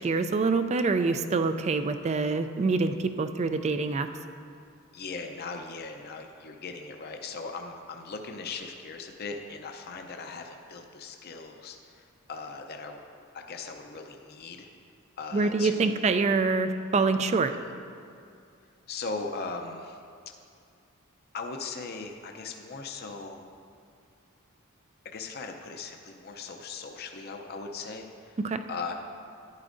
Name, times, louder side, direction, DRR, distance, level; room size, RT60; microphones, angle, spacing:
voice 1, 0.0-4.1 15.3-17.5 28.4-28.6, right 4 dB, 30° right, 9 dB, 0.3 m, -26 dB
voice 2, 4.9-13.0 13.3-14.7 15.2-16.1 18.9-20.0 21.3-23.4 25.1-28.4 28.7-28.9, left 4 dB, 50° left, 4 dB, 0.6 m, -39 dB
11.5 x 9.9 x 2.6 m, 2.4 s
head